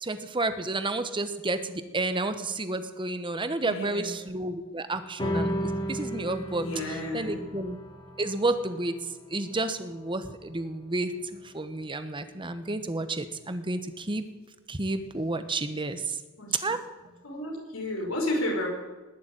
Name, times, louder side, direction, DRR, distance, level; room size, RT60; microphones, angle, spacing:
voice 1, 0.0-6.7 7.1-7.8 8.2-8.9 9.3-11.1 11.5-14.2 14.7-16.2 16.6-16.8, right 2 dB, 25° right, 10 dB, 1.1 m, -31 dB
voice 2, 3.6-4.1 6.6-7.5 16.4-16.6 17.2-18.7, left 1 dB, 80° left, 0 dB, 5.4 m, -32 dB
sound 1, 5.2-11.9, equal, 25° left, 1.7 m, -35 dB
20.0 x 7.1 x 9.1 m, 1.3 s
head